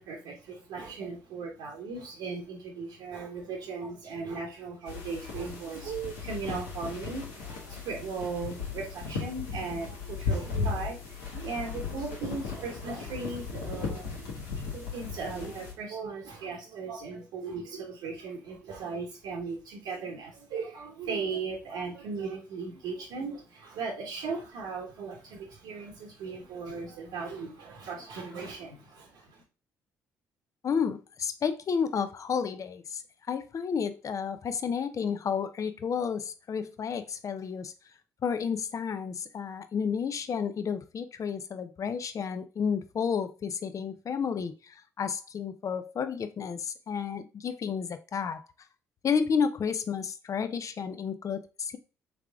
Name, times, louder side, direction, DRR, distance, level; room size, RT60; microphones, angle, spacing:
voice 1, 0.0-29.4, right 4 dB, 75° right, -1 dB, 1.1 m, -37 dB
sound 1, 4.9-15.7, left 5 dB, 85° left, 1.3 m, -36 dB
voice 2, 30.6-33.0 33.3-37.7 38.2-48.4 49.0-51.8, left 6 dB, 45° left, 10 dB, 0.6 m, -31 dB
3.6 x 3.4 x 3.4 m, 0.31 s
hypercardioid pair, 50°, 8 cm